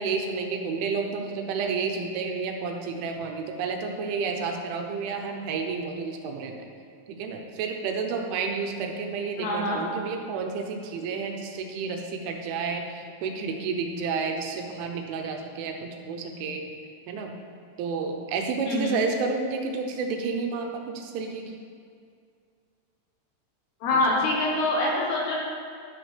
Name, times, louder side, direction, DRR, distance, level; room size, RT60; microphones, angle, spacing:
voice 1, 0.0-6.7 7.2-16.6 17.1-17.3 17.8-21.5 23.9-24.0, right 4 dB, 80° right, 3 dB, 3.3 m, -30 dB
voice 2, 9.4-9.8 18.6-19.0 23.8-25.4, left 2 dB, 70° left, -3 dB, 2.9 m, -25 dB
12.0 x 10.5 x 3.4 m, 2.2 s
omnidirectional pair, 5.6 m